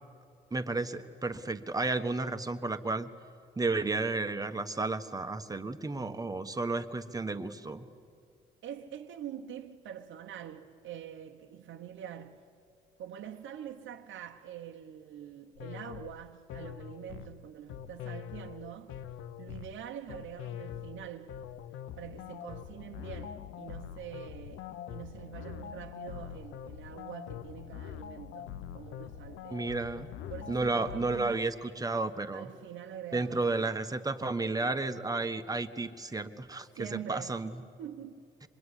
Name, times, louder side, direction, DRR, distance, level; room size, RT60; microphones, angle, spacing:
voice 1, 0.5-3.1 3.6-7.9 29.5-30.1 30.5-32.4 33.1-37.5, right 3 dB, 20° right, 1.4 m, -32 dB
voice 2, 8.6-12.5 13.0-19.0 19.4-21.4 22.0-29.7 30.3-31.5 32.3-33.7 36.7-37.4 37.8-38.3, right 10 dB, 75° right, 1.1 m, -45 dB
sound 1, 15.6-31.4, left 10 dB, 85° left, 0.8 m, -44 dB
26.0 x 21.5 x 10.0 m
cardioid pair, 90°, 20 cm